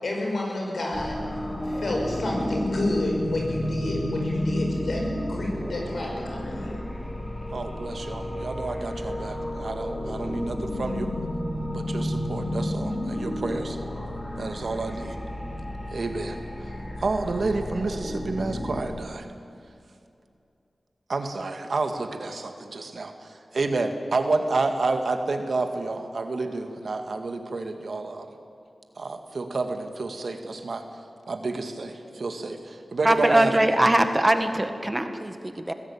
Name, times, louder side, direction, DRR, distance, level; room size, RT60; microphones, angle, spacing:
voice 1, 0.0-1.2 1.6-6.8, left 1 dB, 75° left, -1 dB, 6.2 m, -30 dB
sound 1, 0.9-18.8, left 1 dB, 25° left, 4.9 m, -31 dB
voice 2, 7.5-11.1 11.7-13.8 14.4-15.2 15.9-16.7 17.0-19.3 21.1-28.3 29.0-30.8 31.3-33.7, right 3 dB, 70° right, 6 dB, 2.1 m, -30 dB
voice 3, 33.0-35.7, right 1 dB, 20° right, 7 dB, 1.7 m, -22 dB
21.5 x 16.0 x 8.7 m, 2.5 s
wide cardioid pair, 60°, 0 cm